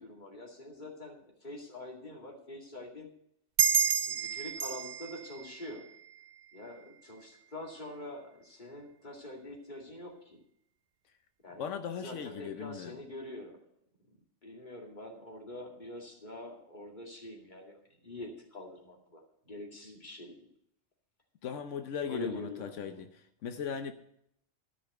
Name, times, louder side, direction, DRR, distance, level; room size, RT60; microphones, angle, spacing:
voice 1, 0.0-3.1 3.9-5.8 6.5-10.4 11.4-11.7 12.0-13.6 14.1-20.4 22.1-23.0, left 1 dB, 40° left, 0 dB, 2.4 m, -45 dB
sound 1, 3.6-6.7, right 7 dB, 55° right, 0.5 m, -31 dB
voice 2, 11.6-13.0 21.4-23.9, left 7 dB, 90° left, 8 dB, 1.1 m, -38 dB
13.5 x 5.7 x 7.8 m, 0.72 s
omnidirectional pair, 1.2 m